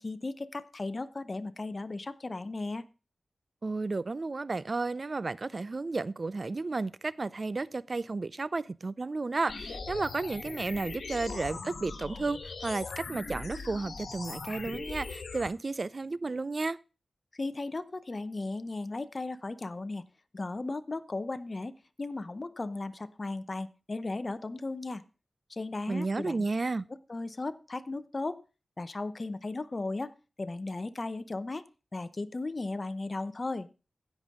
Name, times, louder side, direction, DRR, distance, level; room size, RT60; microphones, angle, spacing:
voice 1, 0.0-2.9 17.3-20.0 20.3-25.0 25.5-26.4 27.1-28.4 28.8-30.1 30.4-31.6 31.9-33.7, left 2 dB, 45° left, 0.8 m, -36 dB
voice 2, 3.6-16.8 25.9-26.9, right 3 dB, 55° right, 0.4 m, -33 dB
sound 1, 9.5-15.5, left 4 dB, 80° left, 1.5 m, -40 dB
16.0 x 5.5 x 3.6 m
cardioid pair, 40°, 0 cm